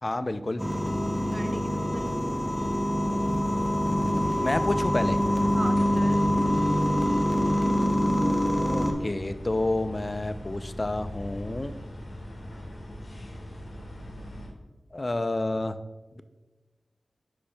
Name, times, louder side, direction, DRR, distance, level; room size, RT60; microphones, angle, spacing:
voice 1, 0.0-0.6 4.4-5.2 8.6-11.7 14.9-15.8, left 2 dB, 35° left, 11 dB, 0.3 m, -29 dB
sound 1, 0.6-8.9, equal, 10° left, 0.8 m, -25 dB
voice 2, 1.3-2.7 5.5-6.5, right 1 dB, 40° right, 6 dB, 0.6 m, -38 dB
sound 2, 1.9-14.5, left 1 dB, 70° left, 1.5 m, -41 dB
10.0 x 4.4 x 2.2 m, 1.2 s
wide cardioid pair, 55°, 0 cm